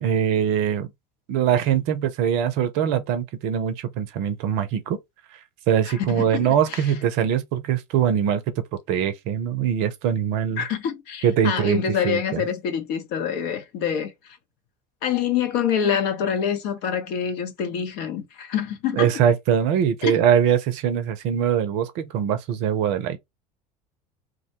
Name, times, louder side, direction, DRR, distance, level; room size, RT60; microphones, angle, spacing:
voice 1, 0.0-0.9 1.3-5.0 5.7-8.4 8.9-10.6 11.2-12.4 18.9-23.2, right 9 dB, 55° right, 0.5 m, -22 dB
voice 2, 5.9-6.9 10.6-14.1 15.0-19.1 20.0-20.1, left 8 dB, 50° left, 0.8 m, -26 dB
2.3 x 2.1 x 2.8 m
figure-of-eight pair, 75°, 21 cm